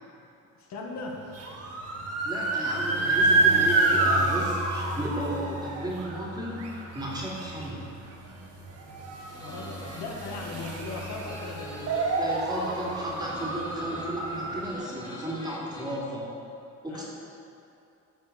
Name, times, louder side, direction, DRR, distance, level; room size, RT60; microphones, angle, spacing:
voice 1, 0.6-1.2 9.4-12.0 16.9-17.0, left 3 dB, 60° left, 0 dB, 1.8 m, -38 dB
sound 1, 1.1-14.7, right 2 dB, 55° right, 1.9 m, -28 dB
voice 2, 2.2-7.9 12.2-16.3 16.8-17.0, right 1 dB, 15° right, -5 dB, 3.3 m, -34 dB
sound 2, 9.3-16.0, left 1 dB, 15° left, 1.8 m, -44 dB
14.5 x 5.5 x 7.0 m, 2.7 s
cardioid pair, 115°, 30 cm